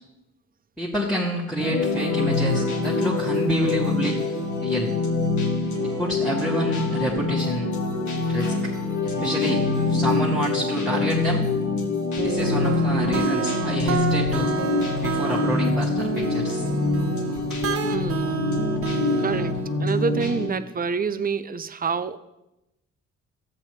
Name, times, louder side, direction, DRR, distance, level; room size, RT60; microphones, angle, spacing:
voice 1, 0.8-4.2 4.6-5.0 6.0-7.7 8.3-8.7 9.0-9.6 9.9-11.4 12.2-14.5 15.0-16.7 17.4-17.6, equal, ahead, -7 dB, 2.2 m, -28 dB
sound 1, 1.6-20.5, left 3 dB, 70° left, 2.0 m, -25 dB
sound 2, 5.6-8.0 9.0-10.9, right 4 dB, 80° right, 1.4 m, -38 dB
sound 3, 12.2-19.8, right 6 dB, 50° right, 1.0 m, -29 dB
voice 2, 17.8-18.4 19.2-22.2, right 5 dB, 30° right, 13 dB, 0.6 m, -27 dB
13.0 x 8.4 x 3.3 m, 0.92 s
cardioid pair, 90°, 30 cm